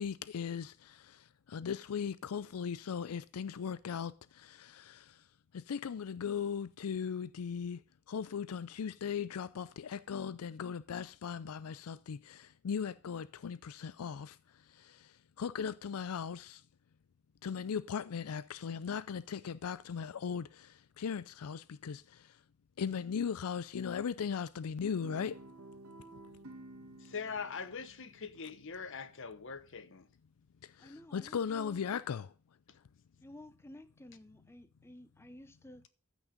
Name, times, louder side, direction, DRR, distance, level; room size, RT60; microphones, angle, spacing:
voice 1, 0.0-5.2 5.5-7.8 8.1-14.4 14.7-16.6 17.4-22.4 22.8-25.4 30.6-32.3, left 7 dB, 80° left, 0.4 m, -38 dB
Guitar, 25.0-29.3, right 2 dB, 70° right, 1.7 m, -53 dB
voice 2, 27.0-30.1, left 5 dB, 60° left, 1.1 m, -42 dB
voice 3, 30.8-31.8 33.2-35.8, left 1 dB, 10° left, 0.7 m, -53 dB
14.0 x 6.3 x 5.2 m
head